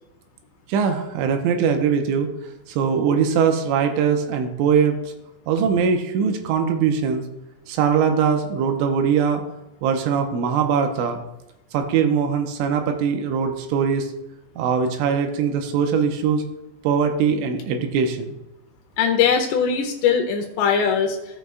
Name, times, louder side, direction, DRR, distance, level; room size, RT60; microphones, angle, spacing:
voice 1, 0.7-2.3 2.7-5.0 5.5-7.2 7.7-9.4 9.8-11.2 11.7-14.1 14.6-16.4 16.8-18.3, right 6 dB, 85° right, 4 dB, 2.9 m, -21 dB
voice 2, 19.0-21.2, left 7 dB, 85° left, 3 dB, 2.4 m, -20 dB
17.0 x 6.2 x 2.3 m, 0.92 s
omnidirectional pair, 5.9 m